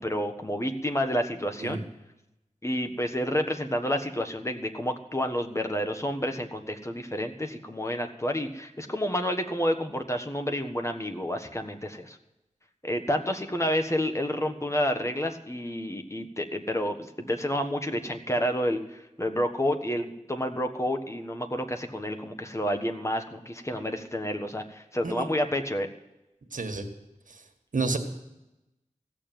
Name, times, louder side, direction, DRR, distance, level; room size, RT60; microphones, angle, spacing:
voice 1, 0.0-1.8 2.6-12.2 12.8-25.9, equal, 20° left, 5 dB, 1.4 m, -29 dB
voice 2, 26.5-26.8 27.7-28.0, right 3 dB, 90° right, 5 dB, 1.6 m, -29 dB
16.0 x 7.1 x 9.2 m, 0.92 s
wide cardioid pair, 60°, 13 cm